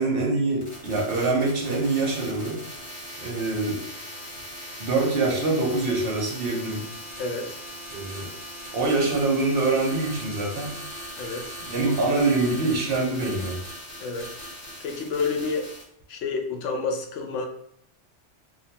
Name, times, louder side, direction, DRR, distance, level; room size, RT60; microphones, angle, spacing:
voice 1, 0.0-2.6 3.2-3.8 4.8-6.9 7.9-8.3 8.7-10.7 11.7-13.6, right 3 dB, 60° right, -1 dB, 0.8 m, -24 dB
sound 1, 0.6-15.8, equal, 55° left, 1.2 m, -39 dB
voice 2, 7.2-7.6 11.2-11.5 14.0-14.3 14.8-15.6 16.1-17.5, left 4 dB, 90° left, 3 dB, 0.9 m, -29 dB
2.5 x 2.2 x 2.7 m, 0.70 s
omnidirectional pair, 1.2 m